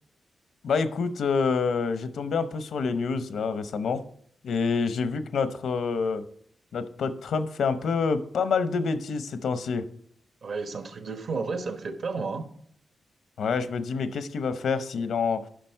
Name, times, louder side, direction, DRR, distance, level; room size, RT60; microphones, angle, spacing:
voice 1, 0.6-4.0 4.4-6.3 6.7-9.8 13.4-15.5, left 5 dB, 80° left, 12 dB, 0.7 m, -27 dB
voice 2, 10.4-12.4, right 4 dB, 60° right, 8 dB, 1.2 m, -32 dB
10.0 x 5.9 x 4.5 m, 0.64 s
wide cardioid pair, 135°, 0 cm